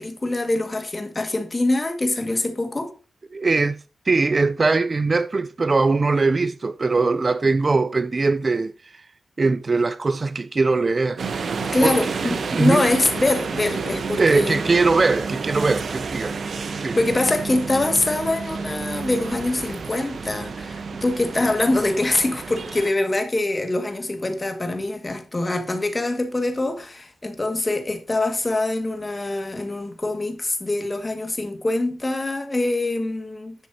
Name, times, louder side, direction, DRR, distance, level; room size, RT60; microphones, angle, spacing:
voice 1, 0.0-2.9 11.6-14.6 17.0-33.6, left 2 dB, 25° left, 1.7 m, -24 dB
voice 2, 3.3-3.8 4.1-9.0 9.4-11.2 11.8-12.0 12.5-12.8 14.2-16.4 16.8-17.0, right 3 dB, 35° right, 0.4 m, -21 dB
sound 1, 11.2-22.9, right 5 dB, 60° right, 0.9 m, -30 dB
10.5 x 7.5 x 2.7 m
wide cardioid pair, 135°, 0 cm